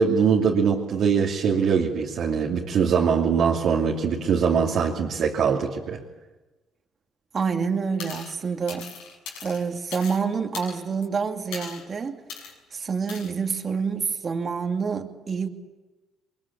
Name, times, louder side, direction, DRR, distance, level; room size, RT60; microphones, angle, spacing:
voice 1, 0.0-6.0, right 6 dB, 65° right, -2 dB, 2.8 m, -22 dB
voice 2, 7.3-8.9 9.4-12.2 12.7-15.5, right 5 dB, 45° right, 4 dB, 2.5 m, -27 dB
sound 1, 8.0-8.3 8.7-10.2 10.5-11.0 11.5-11.8 12.3-12.5 13.1-13.3, left 6 dB, 85° left, 6.3 m, -38 dB
23.5 x 22.5 x 8.6 m, 1.2 s
supercardioid pair, 65°, 0 cm